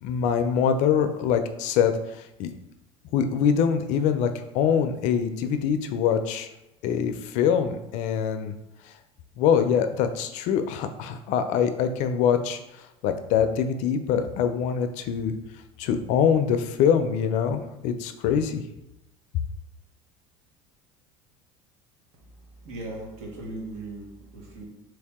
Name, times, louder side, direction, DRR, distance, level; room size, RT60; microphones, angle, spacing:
voice 1, 0.0-2.5 3.1-6.5 6.8-8.5 9.4-12.6 13.0-15.3 15.8-18.6, left 7 dB, 65° left, 8 dB, 0.4 m, -24 dB
voice 2, 22.1-24.7, right 2 dB, 55° right, -2 dB, 1.3 m, -39 dB
3.2 x 2.7 x 3.5 m, 0.88 s
supercardioid pair, 105°, 14 cm